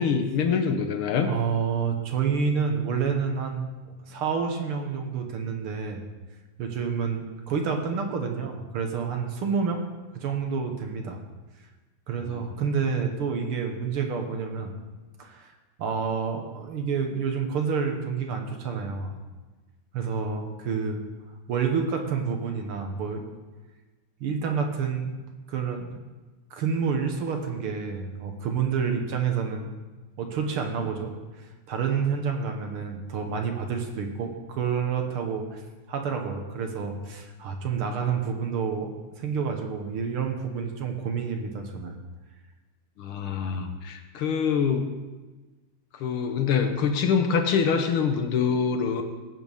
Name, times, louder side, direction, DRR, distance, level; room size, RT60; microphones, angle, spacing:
voice 1, 0.0-1.3 12.3-12.4 43.0-44.9 46.0-49.0, left 6 dB, 65° left, 6 dB, 1.4 m, -25 dB
voice 2, 1.3-3.6 4.1-6.0 6.6-9.8 10.1-11.2 12.1-14.7 15.2-15.5 15.8-19.2 19.9-21.0 21.5-23.2 24.2-25.2 25.5-26.0 26.5-29.7 30.2-31.1 31.4-35.6 35.9-42.0, right 6 dB, 55° right, 3 dB, 1.8 m, -29 dB
19.5 x 8.8 x 3.5 m, 1.2 s
omnidirectional pair, 3.4 m